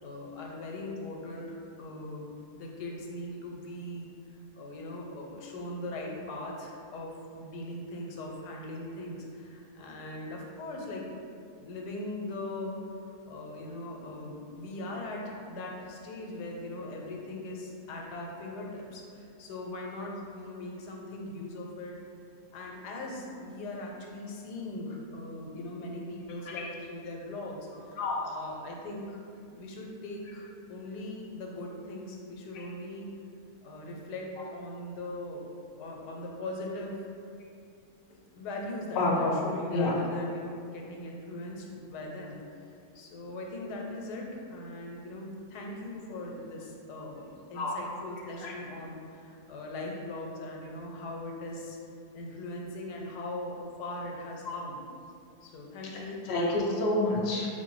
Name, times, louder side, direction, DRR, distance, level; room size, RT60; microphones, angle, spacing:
voice 1, 0.0-4.1 4.5-11.0 11.6-12.7 13.3-21.9 22.5-27.9 28.2-29.2 29.5-33.1 33.6-35.4 35.8-37.1 38.1-42.7 42.9-51.8 52.1-54.8 55.4-56.2, left 1 dB, 85° left, -1 dB, 1.2 m, -40 dB
voice 2, 39.0-39.3 39.7-39.9 47.5-47.7 48.4-48.5 54.4-54.6 56.3-57.5, left 2 dB, 55° left, -3 dB, 0.7 m, -28 dB
4.6 x 2.5 x 3.0 m, 2.4 s
omnidirectional pair, 1.7 m